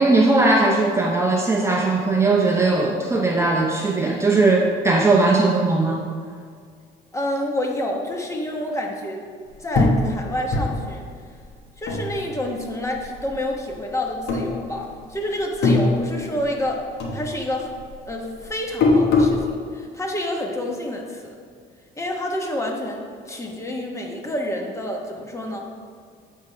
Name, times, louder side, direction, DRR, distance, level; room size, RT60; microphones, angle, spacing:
voice 1, 0.0-6.0, right 3 dB, 15° right, -1 dB, 0.6 m, -19 dB
voice 2, 7.1-9.2 9.6-11.0 11.8-16.8 17.1-17.7 18.1-21.4 22.0-25.7, left 1 dB, 15° left, 1 dB, 1.1 m, -28 dB
sound 1, 9.7-12.6 12.9-13.8 14.2-15.1 15.4-16.7 17.0-19.4, left 3 dB, 75° left, 1.2 m, -22 dB
8.0 x 3.6 x 5.6 m, 2.1 s
cardioid pair, 110°, 17 cm